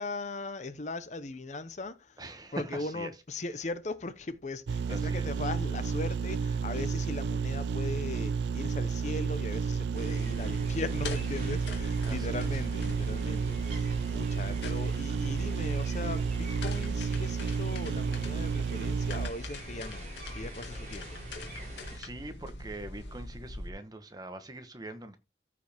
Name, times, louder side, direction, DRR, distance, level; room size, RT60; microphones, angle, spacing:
voice 1, 0.0-2.2 2.5-20.1 20.3-21.2, left 2 dB, 40° left, 0.8 m, -39 dB
voice 2, 2.2-3.1 4.9-5.3 12.0-12.5 21.6-25.2, right 1 dB, 20° right, 1.1 m, -43 dB
sound 1, 4.7-19.3, right 5 dB, 70° right, 0.4 m, -31 dB
sound 2, 9.9-22.0, right 1 dB, 45° right, 6.3 m, -47 dB
sound 3, 10.3-23.7, left 1 dB, 75° left, 2.0 m, -42 dB
14.0 x 5.1 x 3.5 m
head